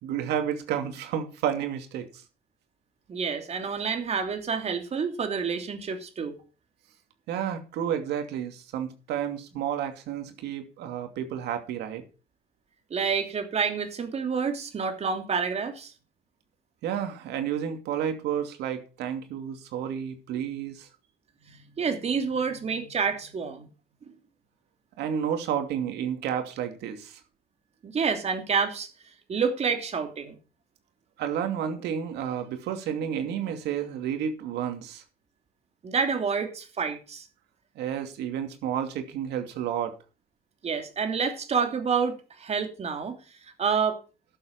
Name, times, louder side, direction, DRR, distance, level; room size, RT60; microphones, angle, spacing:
voice 1, 0.0-2.1 7.3-12.0 16.8-20.9 25.0-27.2 31.2-35.0 37.8-40.0, right 9 dB, 80° right, 2.6 m, -31 dB
voice 2, 3.1-6.3 12.9-15.9 21.5-23.7 27.8-28.9 29.3-30.3 35.8-37.2 40.6-43.1 43.6-44.0, right 6 dB, 40° right, 2.9 m, -28 dB
12.0 x 7.4 x 5.9 m
cardioid pair, 110°, 17 cm